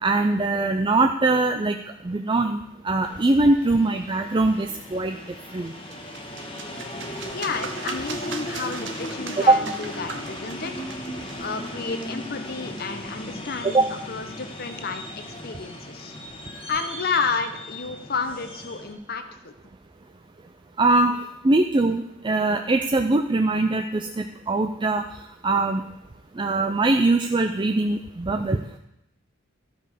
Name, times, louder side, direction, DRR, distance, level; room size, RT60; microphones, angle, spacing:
voice 1, 0.0-1.8 2.0-5.2 5.5-5.7 9.5-9.6 13.7-13.8 20.8-21.1 21.4-25.0 25.4-25.8 26.4-28.6, right 2 dB, 25° right, 5 dB, 0.4 m, -21 dB
sound 1, 3.0-18.9, left 1 dB, 25° left, 1.7 m, -37 dB
sound 2, 5.6-13.2, right 5 dB, 60° right, 1.0 m, -40 dB
voice 2, 7.3-10.7 11.4-16.2 16.7-19.5, left 4 dB, 50° left, 8 dB, 1.0 m, -31 dB
13.0 x 5.5 x 6.5 m, 0.82 s
head